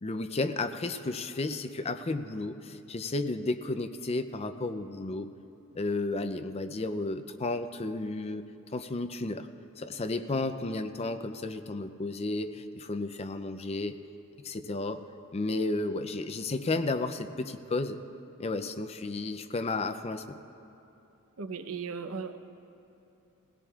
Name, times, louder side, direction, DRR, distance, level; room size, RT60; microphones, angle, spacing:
voice 1, 0.0-5.3 5.8-9.5 9.8-13.9 14.4-15.0 15.3-18.0 18.4-20.4, left 2 dB, 30° left, 9 dB, 0.5 m, -33 dB
voice 2, 21.4-22.4, right 5 dB, 75° right, 8 dB, 0.7 m, -36 dB
21.0 x 17.0 x 2.4 m, 2.9 s
head